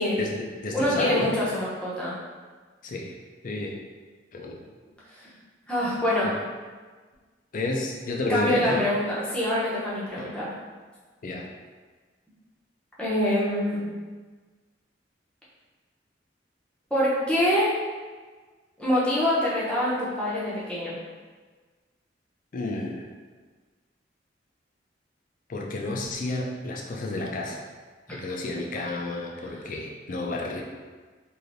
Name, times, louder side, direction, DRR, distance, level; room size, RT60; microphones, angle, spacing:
voice 1, 0.2-1.3 2.8-3.1 3.4-3.8 4.3-4.6 6.2-6.3 7.5-8.8 10.2-10.3 11.2-11.5 22.5-23.1 25.5-27.6 28.1-30.6, left 2 dB, 45° left, 0 dB, 0.4 m, -31 dB
voice 2, 0.7-2.2 5.7-6.3 8.3-10.5 13.0-13.9 16.9-17.7 18.8-21.0, left 1 dB, 5° left, -9 dB, 0.7 m, -25 dB
3.2 x 2.6 x 2.6 m, 1.4 s
head